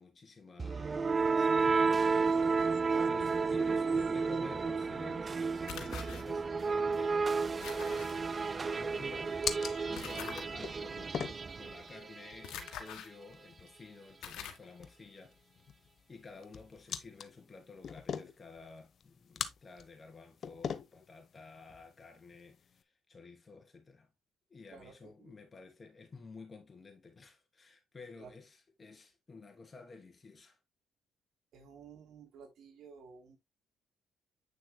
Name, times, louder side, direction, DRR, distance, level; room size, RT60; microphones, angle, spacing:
voice 1, 0.0-2.8 3.1-9.4 9.9-11.2 11.6-15.4 16.1-24.1 24.5-30.6, left 4 dB, 30° left, 3.0 m, -52 dB
sound 1, 0.6-12.5, right 4 dB, 35° right, 0.4 m, -32 dB
voice 2, 2.9-3.2 24.7-25.3 28.2-28.3 31.5-33.4, right 6 dB, 75° right, 3.0 m, -52 dB
sound 2, 5.7-6.2 7.6-8.2 10.0-10.4 12.4-13.1 13.7-13.8 14.2-14.7, left 9 dB, 85° left, 1.6 m, -44 dB
sound 3, 7.9-22.8, left 7 dB, 55° left, 0.9 m, -45 dB
8.9 x 6.3 x 2.2 m
cardioid pair, 90°, 0 cm